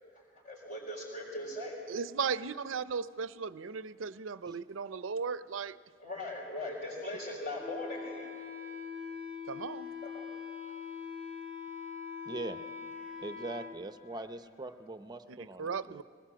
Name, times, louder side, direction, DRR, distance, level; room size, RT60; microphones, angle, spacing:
voice 1, 0.4-1.8 6.0-8.3 10.0-10.2, left 1 dB, 50° left, -7 dB, 4.9 m, -39 dB
voice 2, 1.9-5.8 9.5-9.9 15.3-16.0, right 5 dB, 85° right, 15 dB, 0.6 m, -36 dB
Wind instrument woodwind instrument, 7.6-13.8, left 6 dB, 35° left, 2.3 m, -42 dB
voice 3, 12.3-12.6 13.2-16.0, right 2 dB, 20° right, 9 dB, 0.7 m, -42 dB
21.0 x 19.0 x 7.7 m, 2.2 s
head